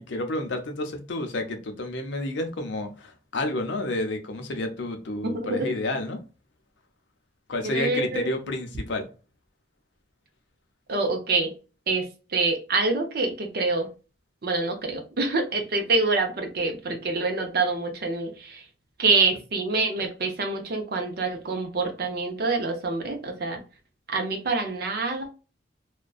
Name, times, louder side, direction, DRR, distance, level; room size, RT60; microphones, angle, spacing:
voice 1, 0.0-6.2 7.5-9.1, left 2 dB, 65° left, 0.5 m, -30 dB
voice 2, 5.2-5.7 7.6-8.3 10.9-11.5 11.9-13.9 14.4-18.6 19.0-23.6 24.1-25.3, right 3 dB, 50° right, 0.5 m, -26 dB
2.5 x 2.1 x 2.3 m
head